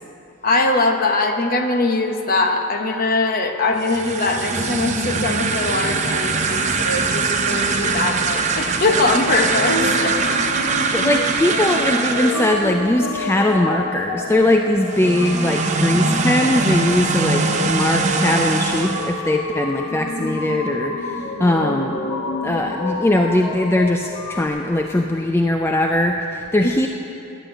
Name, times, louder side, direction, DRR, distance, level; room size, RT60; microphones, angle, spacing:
voice 1, 0.4-10.6, left 3 dB, 40° left, 4 dB, 0.9 m, -21 dB
sound 1, 3.7-12.8 14.8-19.2, right 4 dB, 30° right, 0.7 m, -22 dB
sound 2, 8.8-24.5, left 2 dB, 75° left, 1.2 m, -29 dB
voice 2, 10.9-22.0 22.4-26.9, left 1 dB, 10° left, 3 dB, 0.4 m, -20 dB
11.5 x 8.7 x 8.8 m, 2.9 s
head